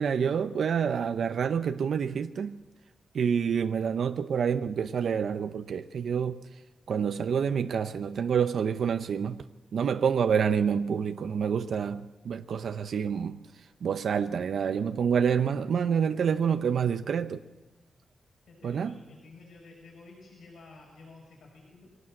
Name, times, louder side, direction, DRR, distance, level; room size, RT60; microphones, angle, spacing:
voice 1, 0.0-2.6 3.1-6.4 6.9-9.4 9.7-13.4 13.8-17.4 18.6-19.0, right 7 dB, 65° right, 0.7 m, -27 dB
voice 2, 18.5-21.9, left 3 dB, 80° left, 6.6 m, -51 dB
24.0 x 17.5 x 7.7 m
wide cardioid pair, 165°, 0 cm